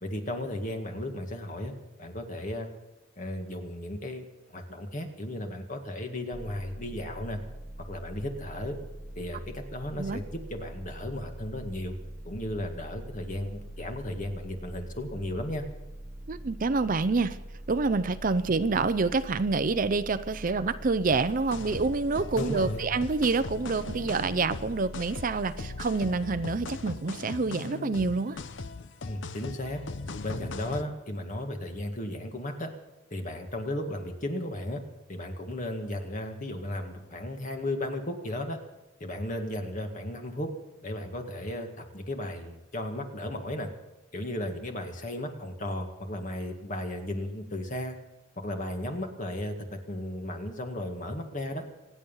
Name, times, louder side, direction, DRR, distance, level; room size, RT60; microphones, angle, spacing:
voice 1, 0.0-2.7 3.2-7.4 7.9-8.8 9.2-12.0 12.3-15.7 22.3-22.9 29.0-29.8 30.2-32.7 33.1-34.8 35.1-38.6 39.0-40.5 40.8-43.7 44.1-48.0 48.4-51.6, left 1 dB, 40° left, 4 dB, 1.9 m, -35 dB
sound 1, 6.3-26.1, right 1 dB, 15° right, 0.9 m, -43 dB
voice 2, 16.3-17.4 17.7-28.4, right 3 dB, 45° right, 13 dB, 0.6 m, -27 dB
sound 2, 21.1-30.8, left 3 dB, 65° left, 0.8 m, -40 dB
26.0 x 9.4 x 5.6 m, 1.1 s
head